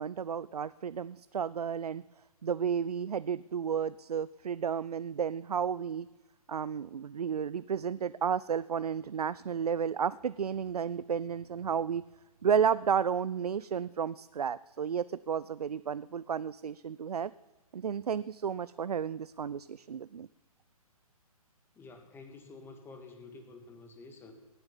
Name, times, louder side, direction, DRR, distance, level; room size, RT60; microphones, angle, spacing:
voice 1, 0.0-2.0 2.4-6.1 6.5-12.0 12.4-17.3 17.7-20.3, right 7 dB, 90° right, 18 dB, 0.4 m, -32 dB
voice 2, 21.8-24.3, left 3 dB, 10° left, 5 dB, 1.9 m, -50 dB
18.0 x 7.9 x 7.2 m, 1.2 s
figure-of-eight pair, 135°, 19 cm